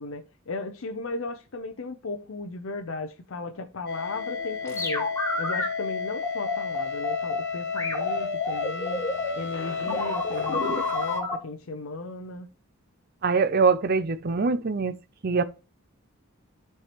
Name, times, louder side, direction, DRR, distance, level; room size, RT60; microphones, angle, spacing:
voice 1, 0.0-5.1 5.4-9.0 9.3-12.5, left 3 dB, 70° left, 0.6 m, -36 dB
sound 1, 3.9-11.2, left 5 dB, 50° left, 1.2 m, -32 dB
sound 2, 4.6-5.7 6.2-7.4 7.8-11.4, left 2 dB, 15° left, 1.4 m, -30 dB
voice 2, 13.2-14.9 15.2-15.4, right 4 dB, 45° right, 0.5 m, -23 dB
12.0 x 4.6 x 3.0 m
head